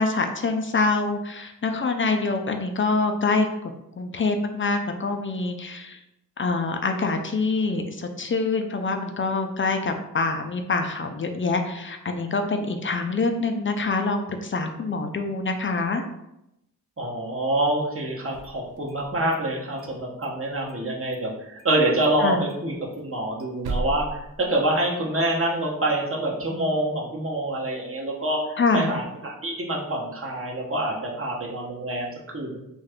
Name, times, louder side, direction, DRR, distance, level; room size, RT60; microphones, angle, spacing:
voice 1, 0.0-3.7 4.0-6.0 6.4-16.0 22.2-22.4 28.6-28.9, left 3 dB, 35° left, 5 dB, 0.4 m, -25 dB
voice 2, 17.0-32.6, right 1 dB, 35° right, -2 dB, 0.9 m, -26 dB
sound 1, 18.2-19.4 19.7-20.9 21.1-21.2 21.6-21.8 22.0-22.1 22.5-25.1, right 2 dB, 80° right, 0.5 m, -36 dB
2.7 x 2.4 x 3.4 m, 0.84 s
cardioid pair, 50°, 37 cm